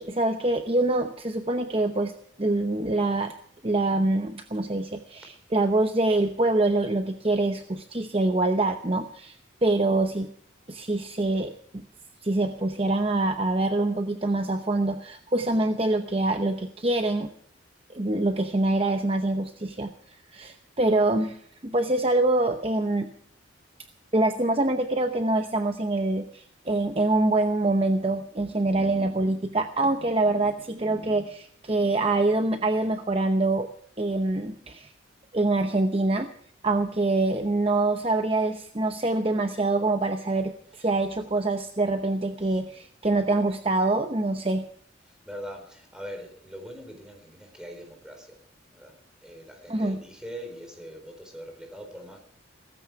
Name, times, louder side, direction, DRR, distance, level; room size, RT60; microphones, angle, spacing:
voice 1, 0.0-2.1 2.4-3.3 3.6-10.3 10.7-11.5 12.2-17.3 17.9-23.1 24.1-33.7 34.0-34.9 35.3-36.3 36.6-44.7 49.7-50.0, right 2 dB, 30° right, 7 dB, 0.8 m, -25 dB
voice 2, 45.3-48.4 48.7-48.9 49.2-52.2, equal, 5° right, 4 dB, 4.1 m, -42 dB
17.0 x 14.5 x 4.7 m, 0.64 s
head